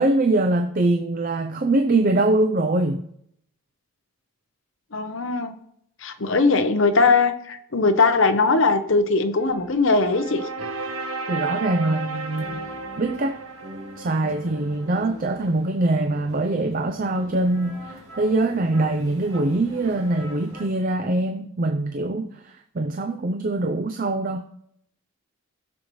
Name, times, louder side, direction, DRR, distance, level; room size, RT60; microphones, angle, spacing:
voice 1, 0.0-3.0 11.3-12.7 13.0-13.4 14.0-24.5, right 2 dB, 40° right, 0.5 m, -23 dB
voice 2, 4.9-5.5 6.0-10.4, left 3 dB, 60° left, 0.8 m, -20 dB
sound 1, 9.4-15.3, right 4 dB, 85° right, 1.1 m, -34 dB
sound 2, 11.9-20.7, left 1 dB, 60° right, 2.2 m, -43 dB
19.0 x 6.8 x 3.1 m
head